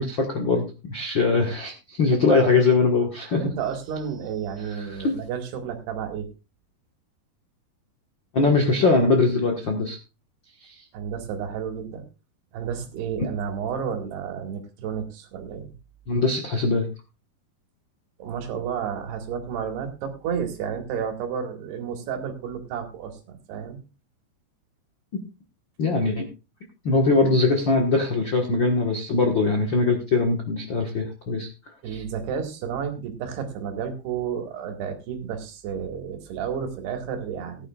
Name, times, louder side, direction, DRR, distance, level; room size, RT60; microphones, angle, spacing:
voice 1, 0.0-3.4 4.7-5.2 8.3-10.0 10.6-10.7 16.1-16.9 25.8-26.2 26.8-31.5 31.9-32.0, left 3 dB, 60° left, 2 dB, 1.2 m, -22 dB
voice 2, 2.1-2.6 3.4-6.3 10.9-12.0 12.5-15.7 18.2-23.8 31.8-37.7, right 7 dB, 80° right, 6 dB, 3.8 m, -31 dB
18.5 x 10.5 x 2.4 m, 0.29 s
omnidirectional pair, 4.6 m